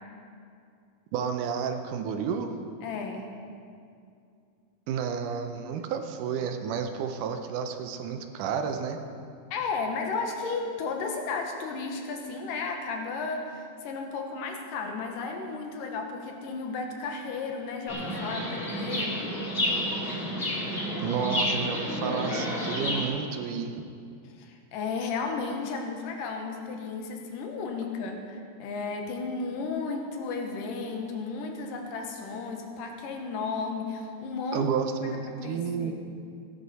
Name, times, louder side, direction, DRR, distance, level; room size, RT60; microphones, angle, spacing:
voice 1, 1.1-2.5 4.9-9.0 21.0-23.8 34.5-35.9, right 6 dB, 75° right, 6 dB, 2.1 m, -31 dB
voice 2, 2.8-3.3 9.5-19.2 24.4-34.7 35.0-35.9, left 4 dB, 75° left, 3 dB, 2.7 m, -34 dB
Chirp tweet, 17.9-23.0, equal, 20° left, 1.6 m, -30 dB
16.5 x 11.5 x 4.2 m, 2.4 s
omnidirectional pair, 4.0 m